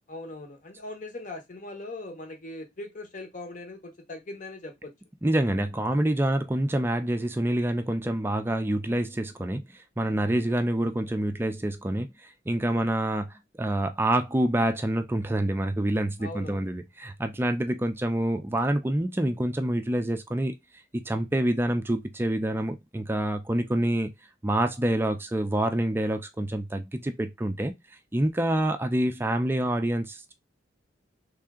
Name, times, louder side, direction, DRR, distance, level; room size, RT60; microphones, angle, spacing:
voice 1, 0.1-4.9 16.2-16.7, left 2 dB, 45° left, 0.9 m, -40 dB
voice 2, 5.2-9.6 10.0-12.1 12.5-13.3 13.6-20.6 20.9-24.1 24.4-27.7 28.1-30.3, right 1 dB, 10° right, 0.4 m, -27 dB
3.3 x 2.7 x 3.5 m
head